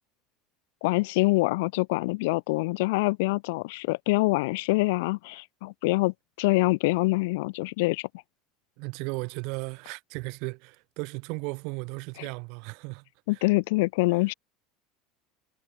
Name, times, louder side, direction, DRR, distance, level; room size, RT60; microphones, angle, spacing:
voice 1, 0.8-8.1 13.3-14.3, left 23 dB, 75° left, 0.8 m, -25 dB
voice 2, 8.8-13.5, right 32 dB, 60° right, 3.9 m, -36 dB
supercardioid pair, 155°, 0 cm